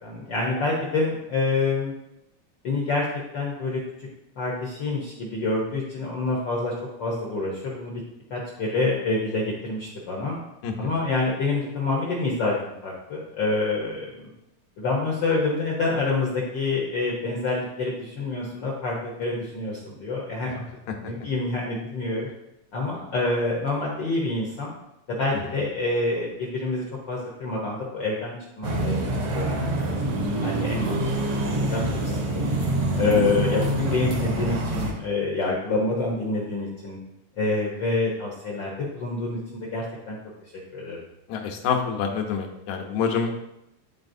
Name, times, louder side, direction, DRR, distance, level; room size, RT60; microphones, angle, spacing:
voice 1, 0.0-1.9 2.6-3.0 3.3-4.1 4.4-6.7 7.0-8.0 8.3-10.4 10.8-12.6 12.8-14.0 14.8-20.6 21.0-22.3 22.7-24.7 25.1-30.0 30.4-31.0 31.3-32.5 33.0-37.0 37.4-40.2 40.7-41.0, left 3 dB, 65° left, -3 dB, 1.1 m, -27 dB
sound 1, 28.6-34.9, right 1 dB, 60° right, 1.9 m, -26 dB
voice 2, 32.9-33.7 41.3-43.3, left 6 dB, 85° left, 2 dB, 2.3 m, -28 dB
10.5 x 4.1 x 2.6 m, 0.87 s
omnidirectional pair, 3.3 m